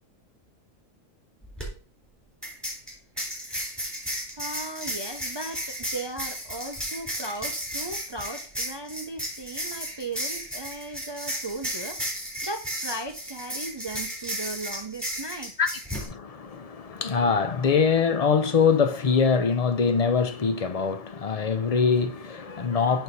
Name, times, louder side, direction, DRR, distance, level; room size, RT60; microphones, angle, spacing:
sound 1, 1.4-1.7 2.4-16.1, equal, ahead, 3.1 m, -34 dB
voice 1, 4.4-12.0 12.4-15.5, right 2 dB, 35° right, 0.4 m, -37 dB
voice 2, 16.0-23.0, left 5 dB, 50° left, 0.4 m, -23 dB
6.7 x 6.2 x 4.1 m
omnidirectional pair, 1.3 m